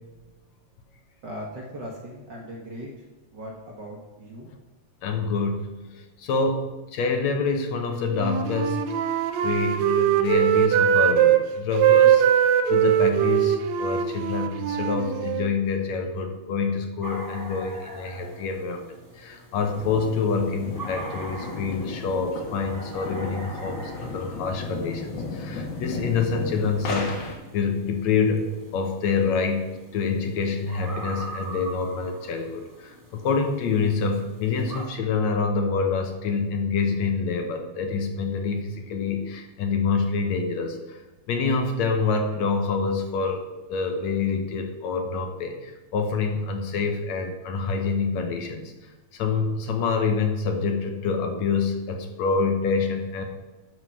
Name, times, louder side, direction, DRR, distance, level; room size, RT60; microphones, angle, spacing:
voice 1, 1.2-2.9 3.3-4.5, equal, 45° right, -2 dB, 1.6 m, -38 dB
voice 2, 5.0-5.7 5.9-6.7 6.9-8.8 9.4-12.3 12.7-18.9 19.2-28.5 28.7-41.0 41.3-48.7 49.1-53.3, left 4 dB, 75° left, 4 dB, 2.2 m, -26 dB
Wind instrument woodwind instrument, 8.1-11.4 11.7-15.5, right 10 dB, 75° right, 1.8 m, -21 dB
sound 1, 17.0-34.8, right 2 dB, 15° right, 0.6 m, -43 dB
sound 2, 19.5-27.3, left 3 dB, 50° left, 1.9 m, -35 dB
12.5 x 4.8 x 5.7 m, 1.1 s
omnidirectional pair, 3.4 m